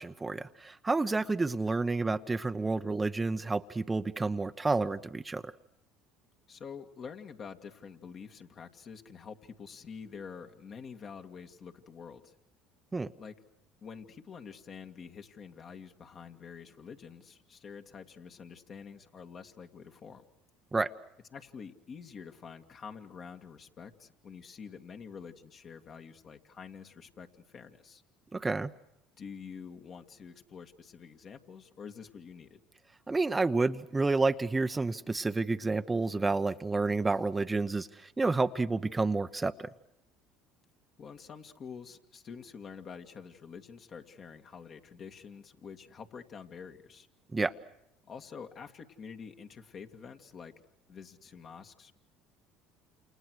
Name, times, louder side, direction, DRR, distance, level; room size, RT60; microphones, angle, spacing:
voice 1, 0.0-5.4 12.9-13.1 20.7-20.9 28.3-28.7 33.1-39.7 47.3-47.5, right 3 dB, 20° right, 10 dB, 0.9 m, -30 dB
voice 2, 6.5-12.3 13.2-13.3 13.8-20.3 21.3-28.0 29.2-32.6 41.0-47.1 48.1-50.5 50.9-51.9, left 6 dB, 45° left, 5 dB, 2.2 m, -47 dB
29.0 x 29.0 x 6.5 m, 0.82 s
hypercardioid pair, 70°, 0 cm